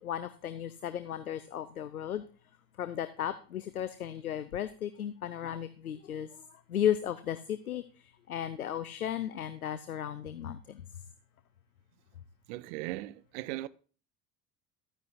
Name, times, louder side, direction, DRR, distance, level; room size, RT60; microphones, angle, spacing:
voice 1, 0.0-2.2 2.8-6.3 6.7-7.8 8.3-10.6, left 10 dB, 85° left, 0.7 m, -34 dB
voice 2, 12.5-13.7, right 17 dB, 55° right, 0.7 m, -38 dB
13.5 x 9.4 x 2.6 m
figure-of-eight pair, 65°, 43 cm